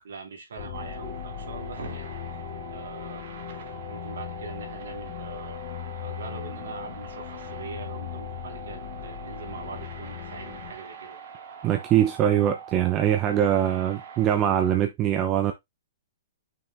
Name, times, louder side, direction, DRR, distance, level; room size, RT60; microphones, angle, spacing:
voice 1, 0.0-3.2 3.9-5.6 5.9-11.2, right 5 dB, 80° right, 3.0 m, -42 dB
sound 1, 0.6-10.7, left 11 dB, 50° left, 0.9 m, -38 dB
sound 2, 0.7-14.8, right 6 dB, 55° right, 2.3 m, -43 dB
voice 2, 11.6-15.5, right 10 dB, 25° right, 0.8 m, -23 dB
6.2 x 4.3 x 3.7 m
hypercardioid pair, 155°, 0 cm